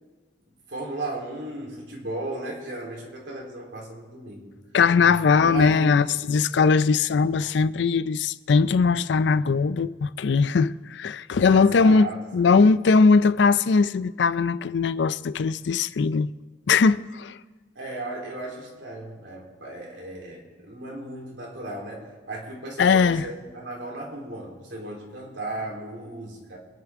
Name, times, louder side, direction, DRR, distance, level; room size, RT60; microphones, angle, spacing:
voice 1, 0.7-4.5 5.3-6.2 11.5-12.2 17.8-26.6, right 2 dB, 85° right, 3.6 m, -35 dB
voice 2, 4.7-16.3 16.7-17.4 22.8-23.3, left 5 dB, 65° left, 0.4 m, -20 dB
25.5 x 10.5 x 3.6 m
head